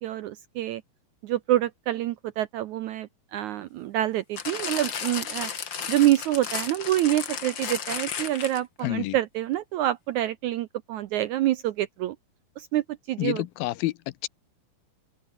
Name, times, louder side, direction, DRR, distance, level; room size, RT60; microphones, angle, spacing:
voice 1, 0.0-0.8 1.2-5.5 5.9-12.2 12.6-13.4, right 14 dB, 75° right, 1.8 m, -27 dB
sound 1, 4.4-8.8 9.5-9.6, left 7 dB, 40° left, 1.8 m, -33 dB
voice 2, 8.8-9.2 13.2-14.3, left 18 dB, 80° left, 2.5 m, -29 dB
omnidirectional pair, 4.2 m